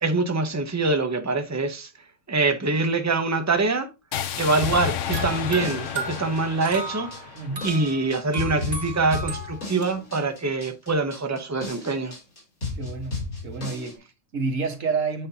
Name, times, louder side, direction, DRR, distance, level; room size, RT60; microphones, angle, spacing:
voice 1, 0.0-1.9 2.3-3.9 4.4-7.1 7.6-12.1, right 3 dB, 15° right, 0.8 m, -24 dB
sound 1, 4.1-8.2, left 9 dB, 65° left, 1.0 m, -33 dB
sound 2, 4.6-14.0, left 3 dB, 90° left, 3.7 m, -34 dB
sound 3, 5.1-9.9, right 2 dB, 40° right, 2.3 m, -36 dB
voice 2, 7.3-7.7 12.7-13.2 13.4-15.3, right 4 dB, 65° right, 1.8 m, -29 dB
8.6 x 5.3 x 2.8 m
omnidirectional pair, 1.4 m